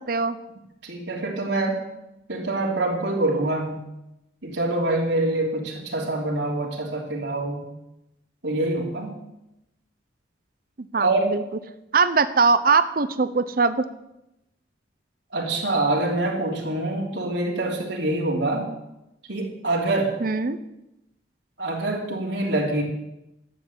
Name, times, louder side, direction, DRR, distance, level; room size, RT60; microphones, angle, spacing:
voice 1, 0.1-0.4 10.8-11.4 11.9-13.9 20.2-20.6, right 4 dB, 50° right, 13 dB, 0.7 m, -21 dB
voice 2, 0.8-1.8 2.3-3.8 4.4-7.7 8.4-9.2 11.0-11.4 15.3-18.7 19.3-20.2 21.6-22.8, right 2 dB, 75° right, -2 dB, 3.1 m, -25 dB
12.0 x 8.5 x 8.3 m, 0.90 s
head